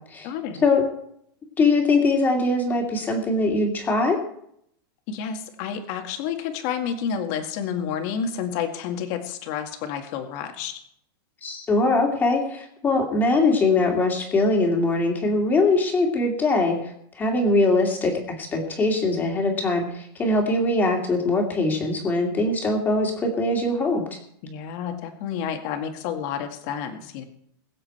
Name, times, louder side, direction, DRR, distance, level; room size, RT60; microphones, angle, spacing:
voice 1, 0.2-0.6 5.1-10.7 24.4-27.2, left 7 dB, 45° left, 5 dB, 1.9 m, -30 dB
voice 2, 1.6-4.2 11.4-24.2, left 2 dB, 15° left, 2 dB, 2.5 m, -22 dB
21.5 x 7.8 x 4.4 m, 0.71 s
supercardioid pair, 160°, 13 cm